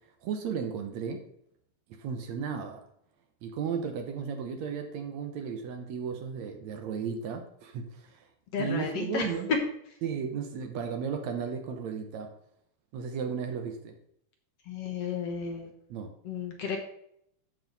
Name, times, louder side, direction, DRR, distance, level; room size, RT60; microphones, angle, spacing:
voice 1, 0.2-1.2 2.0-2.8 3.4-8.3 8.6-9.5 10.0-12.3 12.9-13.9 15.9-16.1, right 6 dB, 70° right, 5 dB, 2.1 m, -34 dB
voice 2, 8.5-9.3 14.7-15.7 16.3-16.8, left 6 dB, 60° left, 2 dB, 2.0 m, -33 dB
13.5 x 5.7 x 4.0 m, 0.72 s
omnidirectional pair, 3.6 m